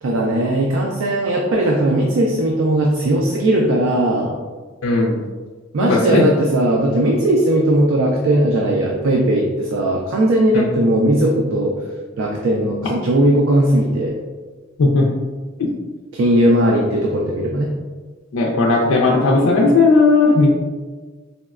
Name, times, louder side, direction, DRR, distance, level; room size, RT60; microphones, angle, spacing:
voice 1, 0.0-4.3 5.7-11.7 12.2-14.2 16.1-17.7, right 1 dB, 75° right, -1 dB, 0.4 m, -18 dB
voice 2, 4.8-5.2 5.8-6.2 10.5-10.6 14.8-15.1 15.6-15.7 18.3-20.5, left 3 dB, 90° left, -4 dB, 0.4 m, -15 dB
4.0 x 2.1 x 2.3 m, 1.4 s
head